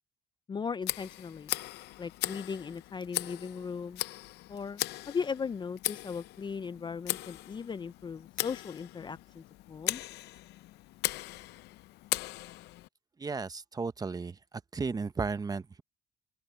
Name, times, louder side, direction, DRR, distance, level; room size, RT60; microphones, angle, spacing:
voice 1, 0.5-1.5 2.0-4.0 4.5-10.0, left 6 dB, 25° left, 0.5 m, -38 dB
Tick, 0.8-12.9, left 17 dB, 80° left, 0.6 m, -38 dB
voice 2, 13.2-14.4 14.7-15.8, right 4 dB, 20° right, 0.9 m, -34 dB
open air
cardioid pair, 110°, 17 cm